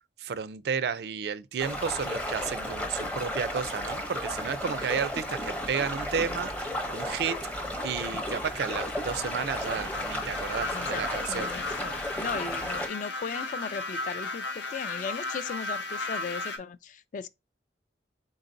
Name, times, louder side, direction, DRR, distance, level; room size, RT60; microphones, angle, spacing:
voice 1, 0.2-7.4 7.8-11.5, right 6 dB, 65° right, 0.4 m, -32 dB
sound 1, 1.6-12.9, left 1 dB, 10° left, 0.6 m, -34 dB
sound 2, 8.2-16.6, left 2 dB, 90° left, 0.8 m, -36 dB
voice 2, 10.6-11.0 11.3-17.3, left 5 dB, 45° left, 0.3 m, -37 dB
3.9 x 3.7 x 2.5 m
head